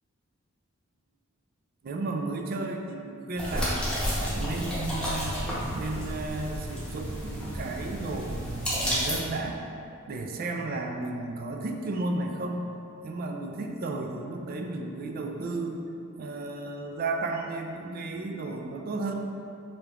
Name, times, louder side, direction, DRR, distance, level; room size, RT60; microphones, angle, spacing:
voice 1, 1.8-5.4 5.7-9.6 10.1-12.7 13.0-15.8 16.2-19.1, right 2 dB, 45° right, 3 dB, 0.3 m, -33 dB
sound 1, 3.4-9.2, equal, 5° left, 0.8 m, -31 dB
5.0 x 2.9 x 2.3 m, 2.7 s
head